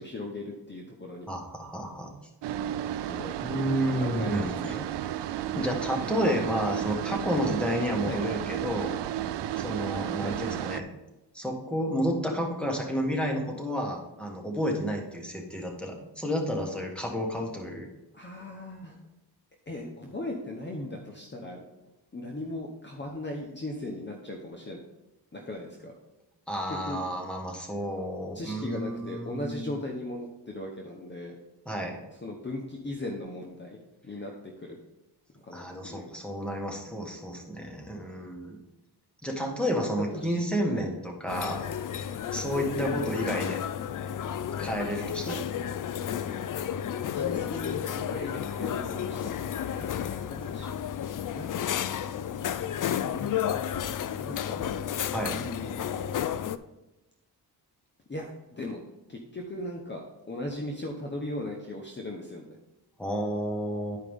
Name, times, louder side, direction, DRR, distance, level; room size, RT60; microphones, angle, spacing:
voice 1, 0.0-1.3 3.1-3.4 3.9-4.9 7.9-8.4 10.1-10.4 18.1-19.0 19.7-21.6 22.1-24.8 25.3-25.9 26.7-27.0 28.3-31.4 32.1-33.8 34.0-34.8 35.3-36.1 39.9-40.4 40.7-40.9 42.8-43.4 45.2-45.4 47.1-50.7 51.3-51.5 53.0-53.6 54.0-54.8 55.3-56.1 58.1-58.8 59.1-62.6, left 1 dB, 25° left, 1 dB, 0.9 m, -38 dB
voice 2, 1.3-2.1 3.4-4.7 5.5-8.9 9.6-10.9 11.3-17.9 26.5-29.7 31.6-32.0 35.5-38.6 39.2-41.6 42.3-43.6 44.6-45.4 55.1-55.4 63.0-64.0, equal, ahead, 1 dB, 1.6 m, -31 dB
sound 1, 2.4-10.8, right 10 dB, 85° right, 0.5 m, -33 dB
sound 2, 41.3-56.6, left 9 dB, 50° left, 0.4 m, -32 dB
11.5 x 4.9 x 3.6 m, 0.98 s
cardioid pair, 90°, 41 cm